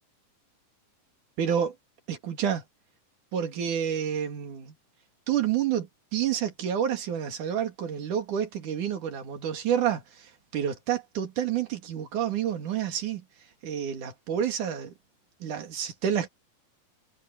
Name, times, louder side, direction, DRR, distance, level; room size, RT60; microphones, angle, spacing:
voice 1, 1.4-1.8 2.1-2.6 3.3-4.7 5.3-13.2 13.6-14.9 15.4-16.3, right 9 dB, 70° right, 3.9 m, -29 dB
omnidirectional pair, 3.8 m